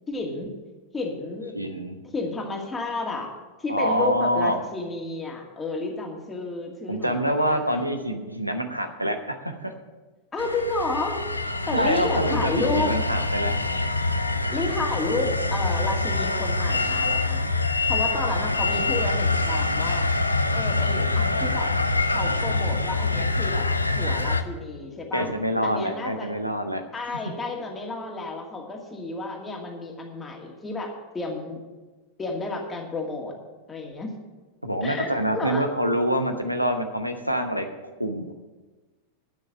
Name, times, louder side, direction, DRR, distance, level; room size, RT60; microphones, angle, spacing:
voice 1, 0.1-0.5 0.9-1.5 2.1-3.3 3.6-7.9 10.3-11.2 11.7-13.0 14.5-17.5 17.9-20.1 20.5-21.7 22.1-23.7 24.0-25.3 25.6-26.3 26.9-31.6 32.2-33.4 33.7-34.1 34.8-35.7, left 3 dB, 15° left, 1 dB, 2.2 m, -31 dB
voice 2, 1.5-2.0 3.7-4.6 6.9-9.7 11.7-13.5 25.1-26.8 34.6-37.7 38.0-38.3, equal, 90° right, 6 dB, 1.0 m, -26 dB
sound 1, 10.4-24.4, left 3 dB, 85° left, 0.6 m, -25 dB
11.0 x 6.4 x 9.0 m, 1.2 s
figure-of-eight pair, 90°, 0 cm